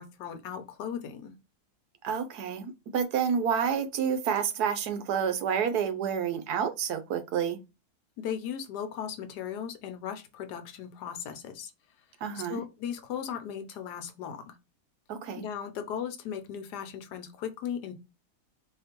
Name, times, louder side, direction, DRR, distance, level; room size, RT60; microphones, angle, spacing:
voice 1, 0.0-1.3 8.2-11.7 12.5-14.6 15.3-17.9, left 8 dB, 85° left, 1.3 m, -37 dB
voice 2, 2.0-7.6 12.2-12.6 15.1-15.4, right 7 dB, 80° right, 1.2 m, -29 dB
4.3 x 2.8 x 2.9 m
omnidirectional pair, 1.7 m